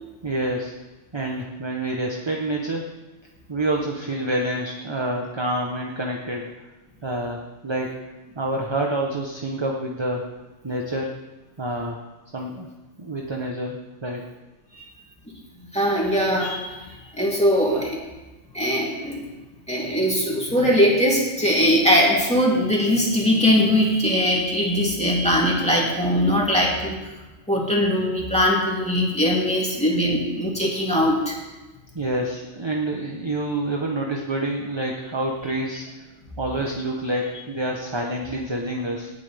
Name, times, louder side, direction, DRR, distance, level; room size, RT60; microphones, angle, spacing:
voice 1, 0.2-0.7 1.1-2.9 3.5-6.5 7.0-7.9 8.4-10.2 10.6-11.1 11.6-12.0 12.3-12.7 13.0-13.8 14.0-14.2 31.9-35.9 36.4-39.1, right 1 dB, 25° right, 0 dB, 1.0 m, -27 dB
voice 2, 15.7-18.0 18.5-19.2 19.7-27.0 27.5-31.3, equal, 5° left, -4 dB, 3.0 m, -21 dB
18.5 x 9.3 x 3.5 m, 1.1 s
omnidirectional pair, 1.3 m